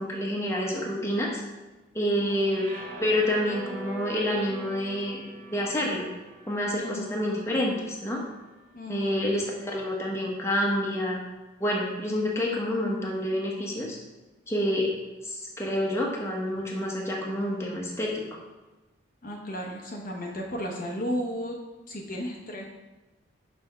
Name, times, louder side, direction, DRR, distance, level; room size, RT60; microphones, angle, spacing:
voice 1, 0.0-1.4 1.9-2.6 3.0-5.3 5.5-6.1 6.5-8.2 8.9-11.2 11.6-14.0 14.5-14.9 15.2-18.1, left 1 dB, 15° left, -2 dB, 0.9 m, -28 dB
voice 2, 2.2-2.7 6.8-7.2 8.7-9.3 19.2-21.6 21.9-22.7, equal, 45° left, -1 dB, 0.7 m, -34 dB
sound 1, 2.5-8.7, right 2 dB, 45° right, 1.1 m, -43 dB
5.6 x 3.4 x 5.4 m, 1.1 s
head